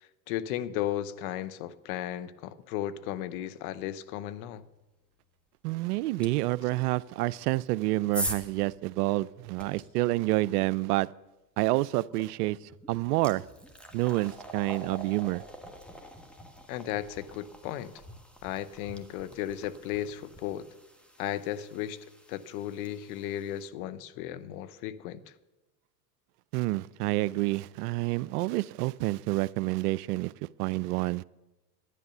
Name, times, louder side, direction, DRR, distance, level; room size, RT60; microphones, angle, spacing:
voice 1, 0.0-4.6 16.7-17.9 18.4-20.7 21.2-22.0 22.3-25.2, left 12 dB, 60° left, 0.9 m, -35 dB
voice 2, 5.6-11.1 11.6-12.6 12.9-13.4 13.9-15.4 26.5-30.3 30.6-31.2, right 19 dB, 70° right, 0.5 m, -28 dB
sound 1, 6.2-6.3 7.4-9.8 12.1-12.3 12.7-23.7, equal, ahead, 1.5 m, -43 dB
11.0 x 9.9 x 6.7 m
hypercardioid pair, 90°, 49 cm